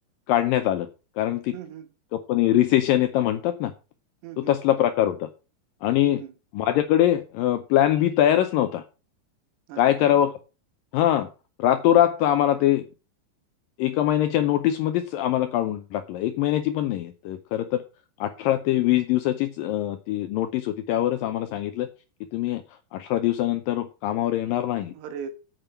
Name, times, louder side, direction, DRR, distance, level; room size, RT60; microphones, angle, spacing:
voice 1, 0.3-0.9 1.2-1.6 2.3-3.7 4.4-5.3 5.8-6.2 6.5-8.8 9.8-10.3 10.9-11.3 11.6-12.8 13.8-17.8 18.2-21.9 22.3-22.6 22.9-24.9, left 12 dB, 85° left, 2.0 m, -23 dB
voice 2, 1.5-1.9 4.2-4.6 6.0-6.3 9.7-10.1 24.9-25.3, right 8 dB, 80° right, 3.3 m, -39 dB
8.9 x 7.5 x 5.7 m
omnidirectional pair, 4.8 m